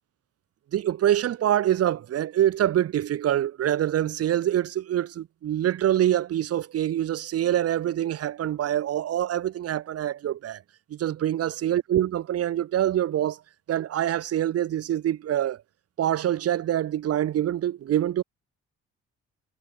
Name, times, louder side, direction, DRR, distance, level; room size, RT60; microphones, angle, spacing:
voice 1, 0.7-10.6 10.9-13.4 13.7-15.6 16.0-18.2, right 11 dB, 50° right, 0.7 m, -25 dB
cardioid pair, 90°, 30 cm